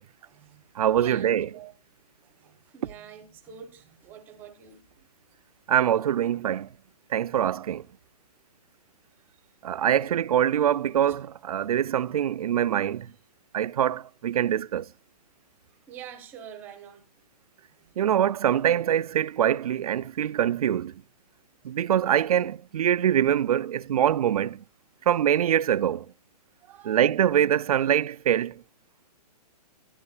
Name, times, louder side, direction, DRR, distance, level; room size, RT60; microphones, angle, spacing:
voice 1, 0.2-0.7 0.9-1.7 2.2-4.8 10.0-10.2 11.1-11.2 15.7-17.1 17.8-17.9 26.6-27.2, right 8 dB, 10° right, 0.8 m, -46 dB
voice 2, 0.8-1.5 5.7-6.7 7.1-7.8 9.6-13.1 13.5-14.9 18.0-20.9 21.6-24.6 25.1-26.0 26.9-28.5, right 10 dB, 65° right, 0.4 m, -24 dB
12.0 x 10.0 x 2.3 m
hypercardioid pair, 180°, 21 cm